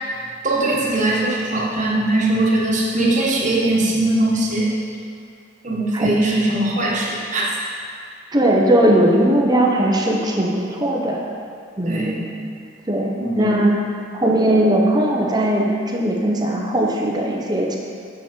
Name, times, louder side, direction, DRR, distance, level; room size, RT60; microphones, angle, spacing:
voice 1, 0.4-4.7 5.6-7.4 11.9-12.2 13.2-13.6, right 2 dB, 40° right, -4 dB, 1.4 m, -20 dB
voice 2, 8.3-11.2 11.8-12.2 12.9-13.8 14.1-17.8, right 1 dB, 20° right, -1 dB, 0.9 m, -19 dB
7.7 x 7.2 x 4.5 m, 2.2 s
head